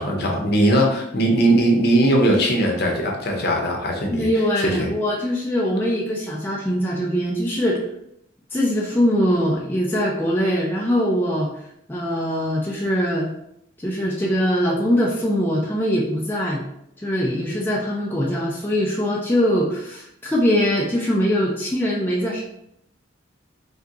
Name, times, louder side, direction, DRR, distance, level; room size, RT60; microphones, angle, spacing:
voice 1, 0.0-4.3 4.6-4.9, right 1 dB, 50° left, 1 dB, 0.8 m, -19 dB
voice 2, 4.1-7.8 8.5-11.5 11.9-13.3 13.8-16.6 17.0-22.4, equal, 10° left, -4 dB, 0.4 m, -22 dB
3.5 x 2.8 x 3.7 m, 0.76 s
head